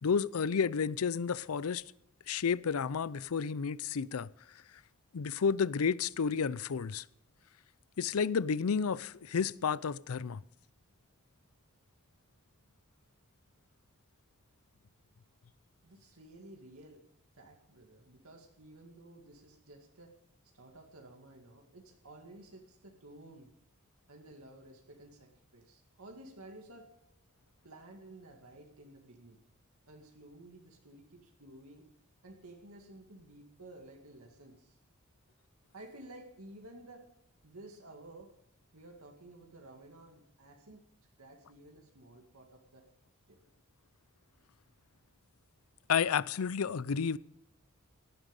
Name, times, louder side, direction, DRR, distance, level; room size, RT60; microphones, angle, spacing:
voice 1, 0.0-1.8 2.3-4.3 5.1-7.0 8.0-10.4 45.9-47.2, left 6 dB, 75° left, 0.5 m, -31 dB
voice 2, 15.8-17.0 17.3-20.2 20.5-23.5 24.1-26.9 27.6-29.4 29.9-31.9 32.2-34.8 35.7-37.0 37.4-38.3 38.7-40.8 41.2-42.9 43.3-43.4, right 1 dB, 75° right, 2.2 m, -53 dB
17.0 x 11.5 x 5.3 m
head